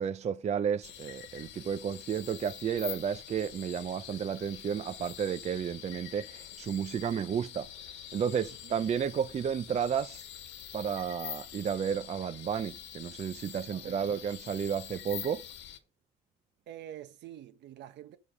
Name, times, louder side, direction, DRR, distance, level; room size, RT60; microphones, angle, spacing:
voice 1, 0.0-7.7 8.1-10.2 10.7-15.4, right 7 dB, 35° right, 0.5 m, -32 dB
sound 1, 0.8-15.8, left 11 dB, 75° left, 1.3 m, -46 dB
voice 2, 13.7-14.2 16.7-18.2, right 11 dB, 65° right, 1.1 m, -47 dB
8.1 x 5.2 x 5.0 m
supercardioid pair, 90°, 19 cm